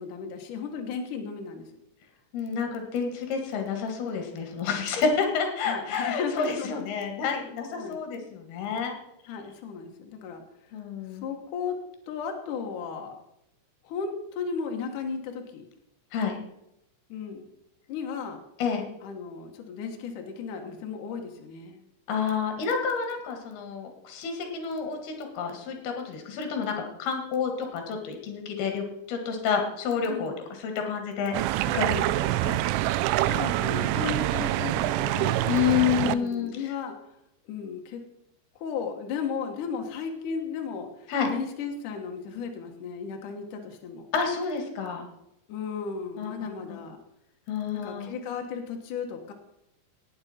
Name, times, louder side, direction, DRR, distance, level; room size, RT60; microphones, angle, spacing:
voice 1, 0.0-1.7 5.7-6.9 7.4-7.5 7.8-8.0 9.3-10.4 11.2-11.7 12.1-13.2 13.8-15.7 17.1-17.5 17.9-18.4 19.0-21.8 30.1-30.3 33.2-35.5 35.9-36.9 37.5-38.0 38.6-44.1 45.5-47.0 47.7-49.3, left 6 dB, 85° left, 3 dB, 1.8 m, -35 dB
voice 2, 2.3-9.0 10.7-11.2 16.1-16.4 18.6-18.8 22.1-31.3 31.7-32.6 35.5-36.7 41.1-41.3 44.1-45.1 46.2-46.3 46.7-46.8 47.5-48.2, left 6 dB, 60° left, 4 dB, 3.2 m, -29 dB
sound 1, 31.3-36.2, right 15 dB, 85° right, 2.9 m, -26 dB
18.0 x 7.9 x 4.3 m, 0.82 s
omnidirectional pair, 5.7 m